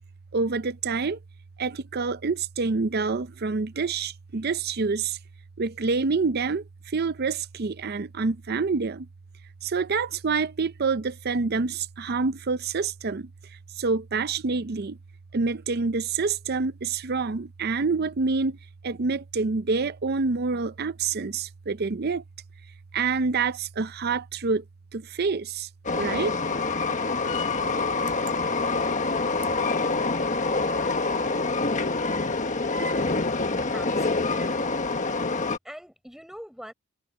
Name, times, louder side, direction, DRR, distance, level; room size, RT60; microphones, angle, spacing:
voice 1, 0.3-1.2 1.6-5.2 5.6-6.6 6.9-9.1 9.6-13.3 13.8-15.0 15.3-18.6 18.8-22.2 22.9-24.6 24.9-25.7 25.9-26.3, right 4 dB, 45° right, 0.6 m, -27 dB
Train, 25.8-35.6, left 3 dB, 35° left, 1.3 m, -26 dB
voice 2, 33.7-34.7 35.6-36.7, equal, ahead, 5.4 m, -43 dB
head